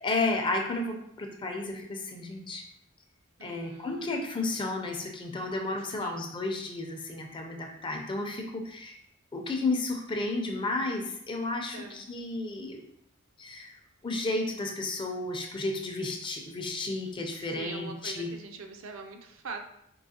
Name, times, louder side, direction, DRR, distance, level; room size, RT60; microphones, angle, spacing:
voice 1, 0.0-2.6 3.4-9.0 9.3-12.8 13.4-13.7 14.0-18.3, left 2 dB, 25° left, 3 dB, 0.4 m, -32 dB
voice 2, 3.4-4.2 5.9-6.3 11.7-12.0 17.3-19.6, right 4 dB, 75° right, 4 dB, 0.5 m, -43 dB
4.6 x 2.8 x 2.8 m, 0.73 s
head